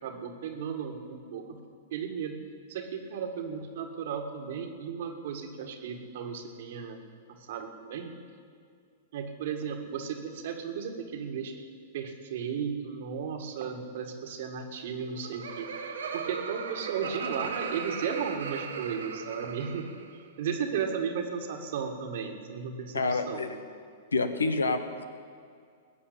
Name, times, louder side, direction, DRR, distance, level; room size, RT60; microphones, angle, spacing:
voice 1, 0.0-1.6 1.9-2.4 2.7-7.0 7.3-8.2 9.1-11.5 11.9-19.9 20.4-23.5, right 6 dB, 60° right, 4 dB, 1.9 m, -35 dB
Laughter, 14.9-20.2, right 6 dB, 75° right, 1.3 m, -37 dB
voice 2, 22.9-23.6 24.1-25.0, left 3 dB, 85° left, 9 dB, 1.1 m, -28 dB
20.5 x 7.1 x 8.7 m, 2.2 s
hypercardioid pair, 105°, 0 cm